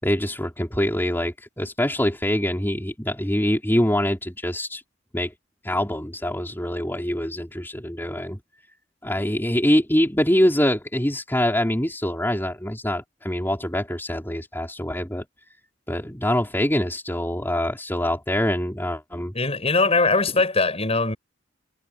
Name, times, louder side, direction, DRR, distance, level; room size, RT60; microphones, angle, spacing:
voice 1, 0.0-4.8 5.1-5.3 5.6-8.4 9.0-15.2 15.9-19.3, left 1 dB, 10° left, 4.0 m, -24 dB
voice 2, 19.3-21.2, left 3 dB, 35° left, 6.9 m, -21 dB
head